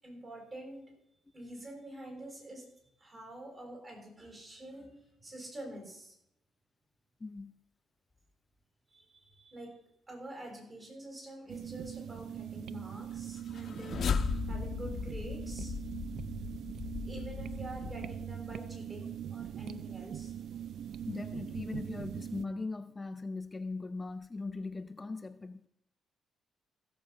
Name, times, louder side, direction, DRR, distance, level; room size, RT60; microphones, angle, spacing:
voice 1, 0.0-0.9 1.3-2.7 2.9-4.9 5.2-6.1 8.9-9.7 10.1-14.0 14.5-15.7 17.0-20.3, right 1 dB, 35° right, 6.6 m, -46 dB
voice 2, 7.2-7.5 21.1-25.7, left 3 dB, 25° left, 0.5 m, -39 dB
sound 1, 11.5-22.4, right 9 dB, 70° right, 0.5 m, -42 dB
sound 2, 13.4-18.7, left 6 dB, 55° left, 0.9 m, -37 dB
16.0 x 7.3 x 5.8 m
cardioid pair, 90°, 0 cm